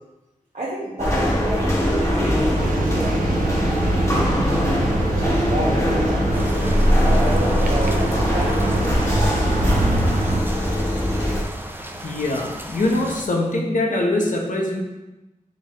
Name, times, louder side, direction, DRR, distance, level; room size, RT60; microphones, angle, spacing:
voice 1, 0.5-4.4 4.9-9.3, right 1 dB, 65° right, -8 dB, 1.1 m, -30 dB
sound 1, 1.0-11.4, equal, 20° left, 1.1 m, -21 dB
sound 2, 2.5-10.4, right 4 dB, 90° right, 0.4 m, -27 dB
sound 3, 6.3-13.2, right 1 dB, 15° right, 0.4 m, -35 dB
voice 2, 12.0-14.8, left 2 dB, 70° left, 0 dB, 0.9 m, -23 dB
5.0 x 3.5 x 3.0 m, 1.0 s
wide cardioid pair, 55°, 14 cm